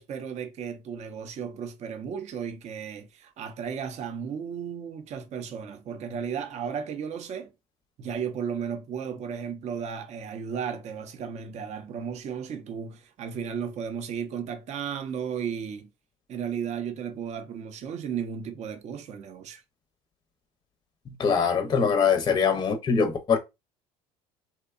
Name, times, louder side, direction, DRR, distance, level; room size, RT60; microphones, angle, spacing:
voice 1, 0.0-7.5 8.0-15.9 16.3-19.6, right 7 dB, 45° right, 0.5 m, -34 dB
voice 2, 21.2-23.4, left 6 dB, 25° left, 0.5 m, -23 dB
2.7 x 2.1 x 2.3 m
hypercardioid pair, 80°, 16 cm